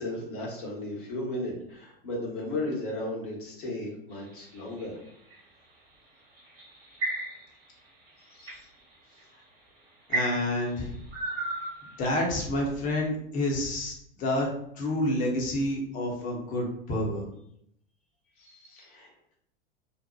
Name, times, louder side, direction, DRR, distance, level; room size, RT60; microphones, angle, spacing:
voice 1, 0.0-5.0 8.2-8.7 9.1-9.3 18.3-19.1, left 1 dB, 60° left, -3 dB, 0.9 m, -35 dB
sound 1, 4.1-5.4 6.4-7.6 8.1-8.6 9.3-9.4 10.1-12.3, right 2 dB, 40° right, 1.1 m, -33 dB
voice 2, 10.1-10.9 12.0-14.5 14.8-17.3, left 1 dB, 25° left, -1 dB, 0.7 m, -29 dB
2.7 x 2.0 x 2.2 m, 0.72 s
figure-of-eight pair, 90°, 30 cm